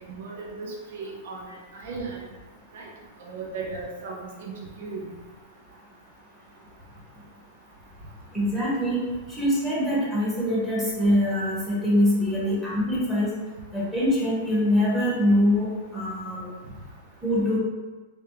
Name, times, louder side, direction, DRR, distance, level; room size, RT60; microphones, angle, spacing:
voice 1, 0.1-1.4 1.7-2.2 2.7-2.9 3.2-5.0, right 4 dB, 70° right, -2 dB, 0.9 m, -36 dB
voice 2, 8.3-9.0 9.3-13.3 13.7-16.5 17.2-17.6, equal, 10° right, -8 dB, 1.4 m, -23 dB
3.6 x 3.3 x 2.9 m, 1.3 s
supercardioid pair, 145°, 0 cm